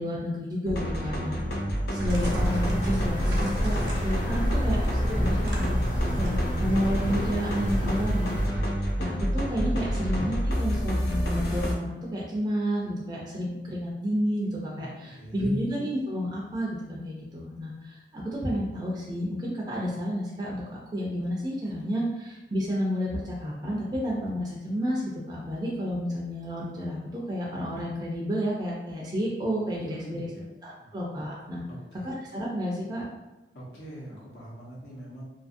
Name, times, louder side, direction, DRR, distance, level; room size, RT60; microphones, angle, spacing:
voice 1, 0.0-1.3 1.9-4.8 5.2-5.8 6.0-30.3 30.6-31.6 32.0-33.0, equal, 25° right, -4 dB, 0.4 m, -31 dB
sound 1, 0.7-11.7, equal, 60° left, 0.5 m, -28 dB
sound 2, 2.0-8.1, equal, 80° right, 0.7 m, -32 dB
sound 3, 2.1-8.5, equal, 45° left, 0.8 m, -35 dB
voice 2, 9.5-10.2 14.8-15.4 29.8-30.5 30.8-30.9 31.7-32.1 33.5-35.2, right 1 dB, 80° left, -6 dB, 1.0 m, -44 dB
2.6 x 2.5 x 2.5 m, 1.0 s
head